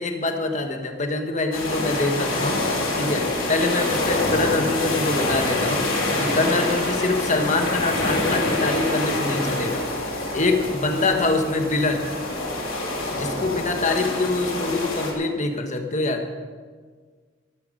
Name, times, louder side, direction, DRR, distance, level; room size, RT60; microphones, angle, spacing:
voice 1, 0.0-2.6 3.0-5.9 6.2-9.9 10.3-12.1 13.1-16.3, left 2 dB, 35° left, 5 dB, 1.4 m, -24 dB
sound 1, 1.5-15.1, left 2 dB, 75° left, 3.9 m, -26 dB
13.5 x 13.0 x 5.2 m, 1.6 s
head